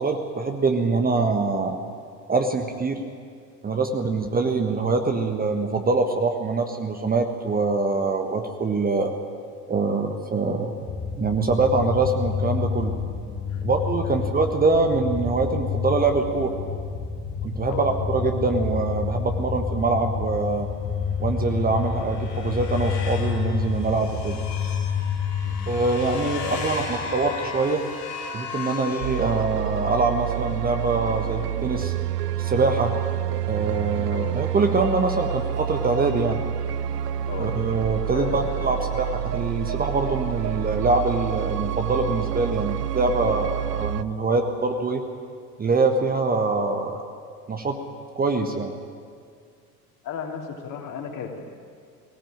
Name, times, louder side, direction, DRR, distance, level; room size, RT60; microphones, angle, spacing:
voice 1, 0.0-1.8 2.3-3.0 3.6-9.1 9.7-10.7 11.2-12.9 13.6-16.5 17.4-20.7 21.2-24.4 25.7-27.8 28.3-31.9 32.4-32.9 33.5-36.4 37.4-45.0 45.6-47.0 47.5-47.8 48.2-48.7, right 3 dB, 20° right, 5 dB, 1.5 m, -24 dB
sound 1, 10.8-27.7, left 6 dB, 25° left, 1.5 m, -29 dB
sound 2, 21.6-29.9, left 5 dB, 75° left, 3.9 m, -36 dB
voice 2, 26.2-26.9 34.1-34.3 37.3-37.5 38.1-38.7 50.0-51.4, left 7 dB, 40° left, 2 dB, 3.3 m, -35 dB
sound 3, 29.0-44.0, right 11 dB, 75° right, 0.7 m, -28 dB
19.0 x 18.5 x 8.9 m, 2.1 s
figure-of-eight pair, 75°, 49 cm